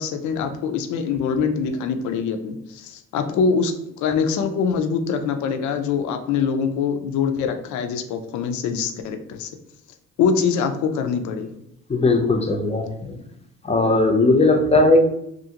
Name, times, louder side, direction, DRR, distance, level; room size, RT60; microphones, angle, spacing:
voice 1, 0.0-9.5 10.2-11.6, left 6 dB, 75° left, 7 dB, 0.5 m, -24 dB
voice 2, 11.9-12.9 13.7-15.0, left 2 dB, 20° left, 4 dB, 0.5 m, -17 dB
2.7 x 2.5 x 2.7 m, 0.78 s
cardioid pair, 90°, 30 cm